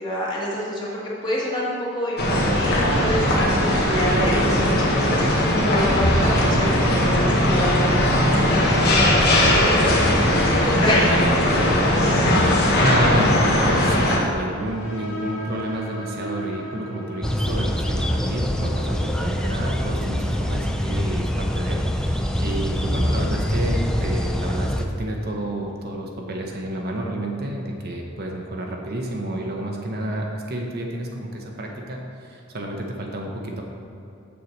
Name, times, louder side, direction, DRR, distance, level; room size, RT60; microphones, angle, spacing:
voice 1, 0.0-8.0 8.5-12.0, left 1 dB, 20° left, -6 dB, 1.6 m, -27 dB
sound 1, 2.2-14.2, left 1 dB, 50° left, 1.2 m, -19 dB
voice 2, 12.8-33.6, right 1 dB, 50° right, 0 dB, 0.8 m, -29 dB
sound 2, 14.5-21.8, right 1 dB, 80° left, 1.6 m, -38 dB
sound 3, 17.2-24.8, equal, 5° left, 0.3 m, -24 dB
7.0 x 4.6 x 6.5 m, 2.8 s
head